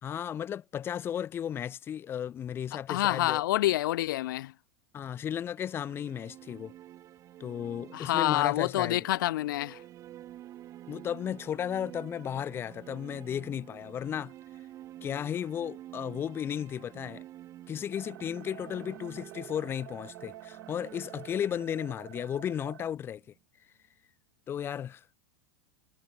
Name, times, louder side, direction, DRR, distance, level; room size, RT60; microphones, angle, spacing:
voice 1, 0.0-3.4 4.9-6.7 7.4-9.0 10.9-14.3 15.0-17.2 17.7-23.2 24.5-25.0, left 9 dB, 20° left, 2.0 m, -34 dB
voice 2, 2.7-4.5 7.9-9.8, left 15 dB, 85° left, 0.4 m, -27 dB
sound 1, 5.4-23.4, right 13 dB, 30° right, 4.2 m, -49 dB
sound 2, 17.9-22.9, right 13 dB, 85° right, 2.3 m, -49 dB
supercardioid pair, 155°, 11 cm